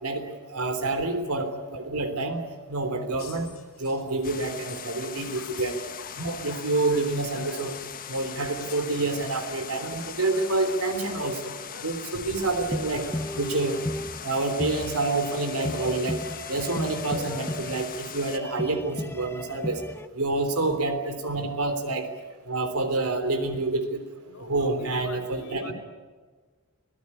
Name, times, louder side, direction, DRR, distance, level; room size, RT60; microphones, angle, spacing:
voice 1, 0.0-3.5 3.8-5.8 6.2-7.7 8.1-11.5 11.8-13.8 14.2-16.2 16.5-19.9 20.1-22.1 22.5-24.0 24.4-25.7, right 2 dB, 85° right, 8 dB, 3.4 m, -28 dB
sound 1, 3.2-13.2, left 4 dB, 60° left, 3.7 m, -47 dB
sound 2, 4.2-18.4, left 8 dB, 40° left, 1.6 m, -40 dB
voice 2, 5.0-5.6 8.4-8.6 24.3-25.7, left 2 dB, 85° left, 2 dB, 3.6 m, -45 dB
sound 3, 12.7-20.1, left 1 dB, 10° left, 0.8 m, -35 dB
25.0 x 17.5 x 9.9 m, 1.4 s
head